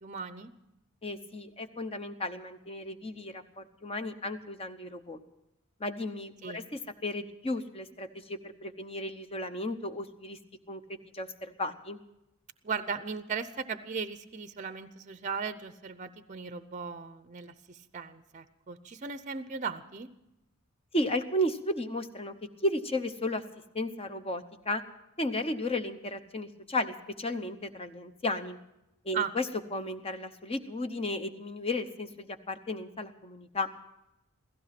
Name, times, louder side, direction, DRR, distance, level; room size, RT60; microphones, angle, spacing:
voice 1, 0.0-0.5 6.4-6.6 12.6-20.1 29.1-29.3, right 5 dB, 35° right, 12 dB, 0.6 m, -37 dB
voice 2, 1.0-5.2 5.8-10.4 10.7-10.8 11.1-12.0 20.9-22.3 22.6-23.4 23.7-24.8 25.2-28.6 29.0-29.5 29.7-33.7, left 1 dB, 25° left, 8 dB, 0.8 m, -34 dB
16.5 x 15.0 x 5.9 m, 0.88 s
head